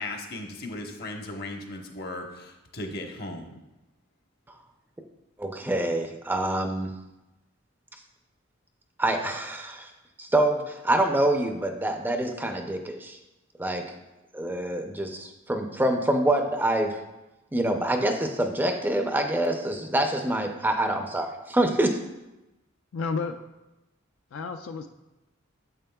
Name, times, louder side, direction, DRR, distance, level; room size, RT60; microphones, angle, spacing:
voice 1, 0.0-3.6, left 2 dB, 50° left, 3 dB, 0.9 m, -37 dB
voice 2, 5.4-6.9 9.0-9.9 10.2-13.2 13.6-13.9 14.3-17.0 17.5-22.0, right 1 dB, 10° right, 5 dB, 0.4 m, -26 dB
voice 3, 22.9-23.4 24.3-24.9, left 4 dB, 70° left, 6 dB, 0.4 m, -31 dB
9.0 x 7.4 x 2.2 m, 1.0 s
head